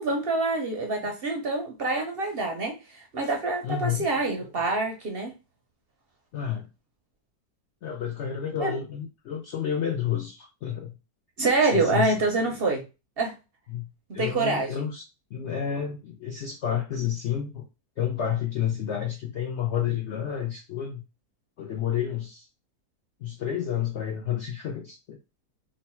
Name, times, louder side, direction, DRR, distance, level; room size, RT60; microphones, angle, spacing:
voice 1, 0.0-5.3 8.6-8.7 11.4-12.8 13.2-13.3 14.1-14.7, right 3 dB, 60° right, 2 dB, 0.6 m, -26 dB
voice 2, 3.6-4.1 6.3-6.7 7.8-10.9 11.6-12.1 13.7-13.9 14.1-15.0 15.3-17.6 18.0-21.0 21.6-22.5 23.2-25.2, left 9 dB, 70° left, 2 dB, 0.6 m, -30 dB
3.0 x 2.2 x 4.2 m, 0.28 s
omnidirectional pair, 1.7 m